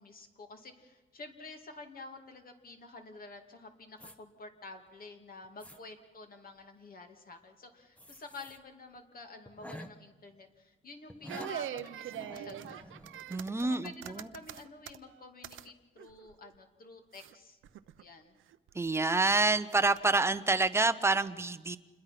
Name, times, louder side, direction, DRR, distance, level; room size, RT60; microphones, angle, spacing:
voice 1, 0.0-12.9 13.6-17.6 18.0-18.4, left 3 dB, 45° left, 5 dB, 2.4 m, -49 dB
sound 1, 4.0-4.2 4.9-5.0 5.4-5.8 8.0-8.6 9.0-9.1 9.5-9.9 11.1-11.6 12.1-13.8 14.1-14.3, equal, 5° left, 1.1 m, -49 dB
sound 2, 11.3-15.7 16.0-16.5 17.1-17.3 17.6-18.0 18.5-19.1 19.7-20.4, right 11 dB, 85° right, 0.8 m, -43 dB
voice 2, 13.3-14.3 18.7-21.8, right 3 dB, 15° right, 11 dB, 0.8 m, -28 dB
28.0 x 21.5 x 5.9 m, 1.3 s
cardioid pair, 140°, 20 cm